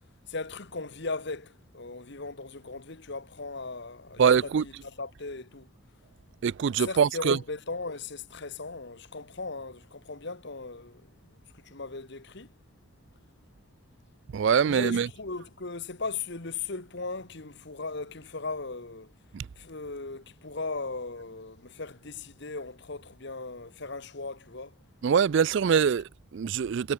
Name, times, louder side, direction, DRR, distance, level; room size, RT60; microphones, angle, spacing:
voice 1, 0.3-5.7 6.7-12.5 14.6-19.1 19.5-24.8, left 3 dB, 55° left, 1.5 m, -38 dB
voice 2, 4.2-4.6 6.4-7.4 14.3-15.1 19.3-19.5 25.0-26.9, right 7 dB, 55° right, 0.3 m, -24 dB
head